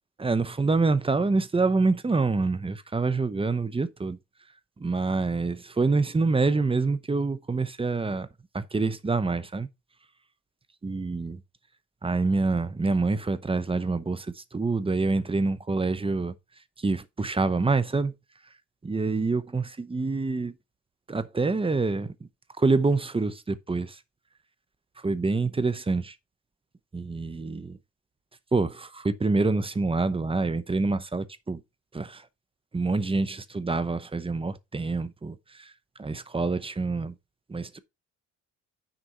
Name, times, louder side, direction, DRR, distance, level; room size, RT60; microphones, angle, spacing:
voice 1, 0.2-4.2 4.8-8.3 8.5-9.7 10.8-11.4 12.0-16.3 16.8-18.1 18.8-20.5 21.1-22.1 22.6-24.0 25.0-26.1 26.9-27.8 28.5-31.6 31.9-32.2 32.7-35.7 36.0-37.1 37.5-37.8, right 3 dB, 20° right, 0.8 m, -26 dB
6.4 x 4.4 x 5.6 m
cardioid pair, 90°, 30 cm